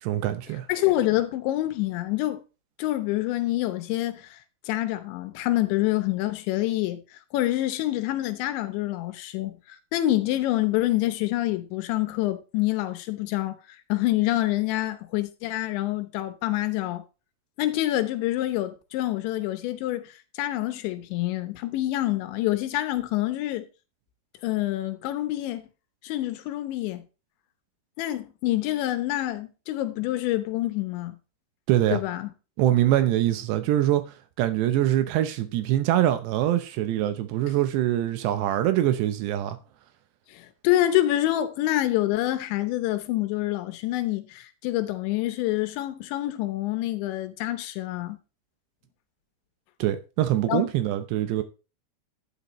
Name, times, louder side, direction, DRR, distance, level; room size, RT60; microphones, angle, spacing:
voice 1, 0.0-0.7 31.7-32.0 32.6-34.0 34.4-39.6 49.8-51.4, right 13 dB, 80° right, 2.9 m, -24 dB
voice 2, 0.7-2.4 2.8-4.4 4.7-7.0 7.3-13.6 13.9-17.0 17.6-23.7 24.4-25.6 26.0-27.0 28.0-31.2 31.9-32.3 40.3-48.2 50.5-50.6, left 15 dB, 90° left, 3.3 m, -27 dB
11.0 x 10.0 x 3.1 m
omnidirectional pair, 5.1 m